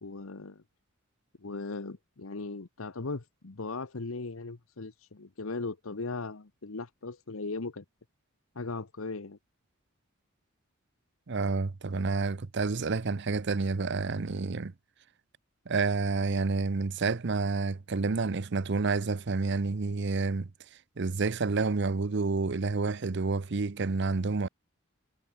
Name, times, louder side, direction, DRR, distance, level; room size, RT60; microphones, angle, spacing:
voice 1, 0.0-0.6 1.4-7.8 8.5-9.4, left 3 dB, 85° left, 1.1 m, -38 dB
voice 2, 11.3-14.7 15.7-20.5 21.0-24.5, right 4 dB, 55° right, 0.7 m, -29 dB
head